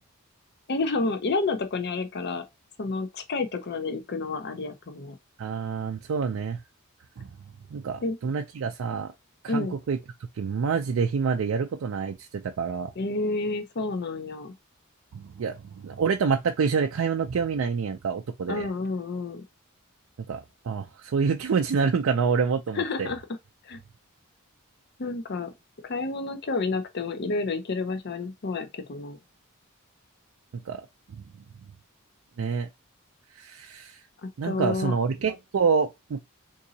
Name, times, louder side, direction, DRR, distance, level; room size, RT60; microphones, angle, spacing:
voice 1, 0.7-2.4 2.8-5.2 8.0-8.2 9.5-9.7 13.0-14.5 18.5-19.4 22.7-23.2 23.6-23.8 25.0-25.5 25.8-29.2 34.2-34.9, left 3 dB, 50° left, 0.6 m, -30 dB
voice 2, 5.4-6.6 7.2-7.3 7.7-9.1 9.4-12.9 15.1-18.7 20.3-23.1 30.6-30.8 31.1-31.2 32.4-32.7 33.3-34.0 34.4-36.2, right 5 dB, 65° right, 0.4 m, -27 dB
3.8 x 2.6 x 2.6 m
head